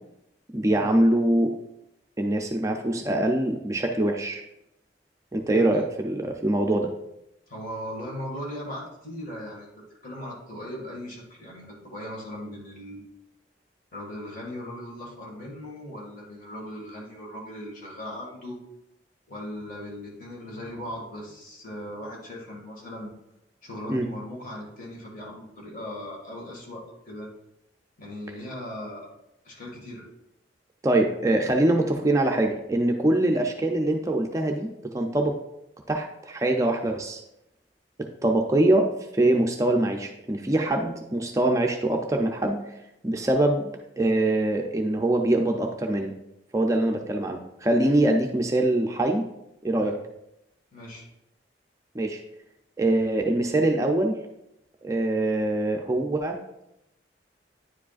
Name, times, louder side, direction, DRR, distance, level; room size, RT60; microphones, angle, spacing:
voice 1, 0.5-1.6 2.2-4.4 5.3-6.9 23.9-24.1 30.8-35.4 35.9-37.2 38.2-42.6 43.0-43.7 44.0-46.1 46.5-49.3 49.6-49.9 51.9-52.2 52.8-54.2 54.8-56.4, right 1 dB, 20° right, 3 dB, 0.4 m, -23 dB
voice 2, 5.5-5.8 7.5-13.0 13.9-18.6 19.3-23.1 23.6-27.3 28.0-29.1 29.4-30.0 49.8-50.0 50.7-51.1, left 1 dB, 50° left, -3 dB, 1.9 m, -38 dB
9.8 x 4.8 x 2.4 m, 0.84 s
head